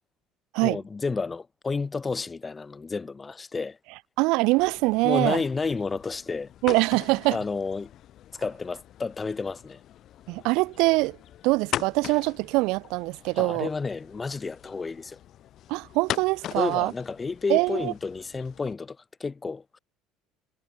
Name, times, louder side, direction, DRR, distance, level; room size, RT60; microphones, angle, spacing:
voice 1, 0.6-3.8 5.0-6.5 7.3-7.9 8.4-9.8 13.4-15.2 16.6-19.8, left 4 dB, 20° left, 4.2 m, -31 dB
voice 2, 4.2-5.4 6.6-7.4 10.3-11.2 11.4-13.7 15.7-16.9 17.5-17.9, right 24 dB, 75° right, 3.4 m, -23 dB
sound 1, 4.6-18.7, left 12 dB, 55° left, 7.2 m, -41 dB
supercardioid pair, 105°, 0 cm